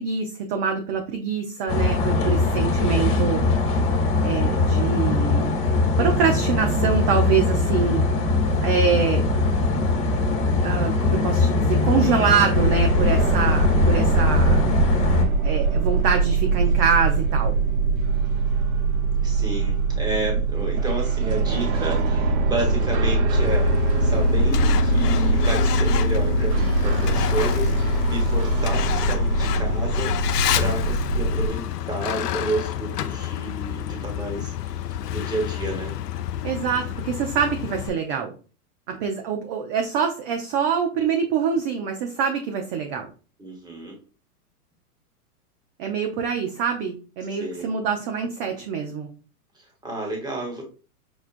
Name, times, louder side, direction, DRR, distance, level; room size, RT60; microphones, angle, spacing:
voice 1, 0.0-3.4 4.2-5.5 6.0-8.1 8.6-9.4 10.6-14.7 15.4-17.5 36.4-38.3 38.9-43.1 45.8-49.1, right 6 dB, 35° right, 4 dB, 0.5 m, -25 dB
sound 1, 1.7-15.2, left 3 dB, 40° left, 1.4 m, -21 dB
voice 2, 2.1-2.7 19.2-23.7 24.0-34.7 35.1-36.0 43.4-44.0 47.3-47.7 49.5-50.6, right 1 dB, 10° right, 0 dB, 1.2 m, -31 dB
sound 2, 12.5-31.5, right 2 dB, 70° right, 1.1 m, -22 dB
Truck, 23.3-37.9, left 11 dB, 85° left, 0.6 m, -29 dB
6.1 x 2.3 x 2.5 m, 0.36 s
hypercardioid pair, 125°, 46 cm